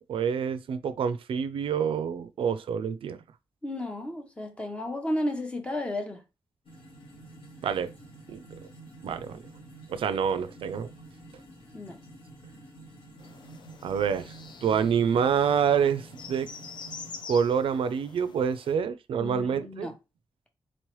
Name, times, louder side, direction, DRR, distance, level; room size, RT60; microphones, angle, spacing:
voice 1, 0.1-3.2 7.6-7.9 8.3-8.4 9.0-9.4 9.9-10.9 13.8-14.3 14.6-16.5 17.3-19.9, right 7 dB, 75° right, 0.3 m, -27 dB
voice 2, 3.6-6.2 11.7-12.0 19.2-19.9, left 1 dB, 10° left, 0.6 m, -33 dB
sound 1, 6.6-17.2, right 2 dB, 70° left, 1.5 m, -49 dB
sound 2, 13.2-18.7, left 5 dB, 55° left, 0.5 m, -46 dB
4.0 x 3.0 x 3.0 m
wide cardioid pair, 170°, 9 cm